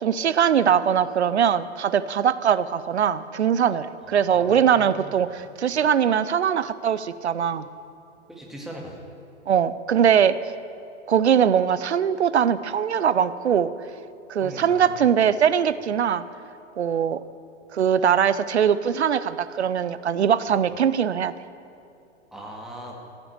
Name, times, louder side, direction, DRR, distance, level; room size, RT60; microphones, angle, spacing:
voice 1, 0.0-7.7 9.5-10.4 11.1-13.7 14.3-16.2 16.8-17.2 17.7-21.3, right 8 dB, 70° right, 15 dB, 0.7 m, -21 dB
voice 2, 4.0-5.1 8.3-9.1 14.4-15.1 20.5-20.7 22.3-23.0, equal, ahead, -2 dB, 1.9 m, -40 dB
15.0 x 7.0 x 8.0 m, 2.7 s
figure-of-eight pair, 105°, 35 cm